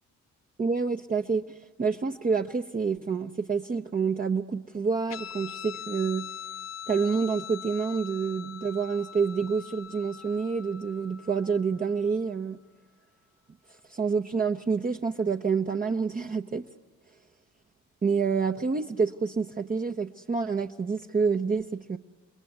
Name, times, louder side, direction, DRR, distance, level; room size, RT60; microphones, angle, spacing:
voice 1, 0.6-6.2 6.9-12.6 13.9-16.7 18.0-22.0, right 5 dB, 30° right, 4 dB, 0.9 m, -28 dB
Guitar, 5.1-12.0, left 8 dB, 60° left, 1.4 m, -42 dB
29.5 x 21.5 x 9.4 m, 1.3 s
cardioid pair, 90°, 30 cm